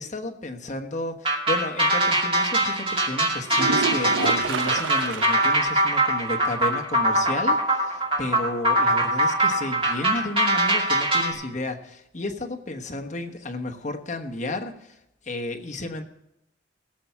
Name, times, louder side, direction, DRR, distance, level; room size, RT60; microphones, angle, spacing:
voice 1, 0.0-15.0 15.2-16.0, left 2 dB, 40° left, 3 dB, 1.2 m, -32 dB
sound 1, 1.2-11.3, right 1 dB, 30° right, 2.3 m, -22 dB
sound 2, 3.5-5.7 6.1-6.2 6.6-6.7 10.5-10.6, right 5 dB, 90° right, 0.4 m, -29 dB
16.5 x 7.0 x 5.9 m, 0.81 s
head